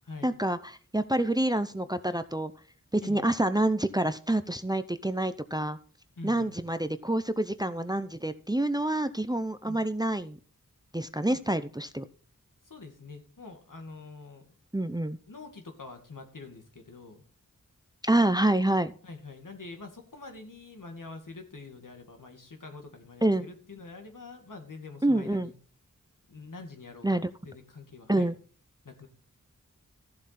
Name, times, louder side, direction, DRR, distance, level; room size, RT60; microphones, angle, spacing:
voice 1, 0.2-2.5 2.9-5.8 6.2-10.4 10.9-12.0 14.7-15.2 18.0-18.9 23.2-23.5 25.0-25.5 27.0-27.3 28.1-28.4, right 1 dB, 10° right, 12 dB, 0.6 m, -27 dB
voice 2, 3.0-3.3 6.2-6.6 9.6-9.8 11.3-11.4 12.6-14.6 15.3-17.2 19.0-25.5 26.3-28.3 28.8-29.1, left 3 dB, 70° left, 4 dB, 2.2 m, -45 dB
14.0 x 7.3 x 4.2 m, 0.42 s
wide cardioid pair, 55°, 33 cm